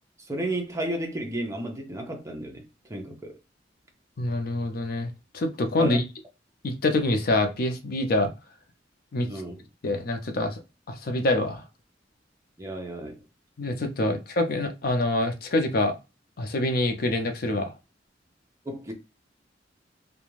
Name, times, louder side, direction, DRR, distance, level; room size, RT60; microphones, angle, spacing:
voice 1, 0.3-3.4 5.8-6.0 9.3-9.7 12.6-13.2 14.0-14.1 18.7-18.9, right 1 dB, 15° right, 0.5 m, -33 dB
voice 2, 4.2-6.0 6.6-8.3 9.1-9.3 9.8-10.6 10.9-11.6 13.6-15.9 16.4-17.7, left 2 dB, 55° left, 0.5 m, -26 dB
2.4 x 2.2 x 3.1 m
head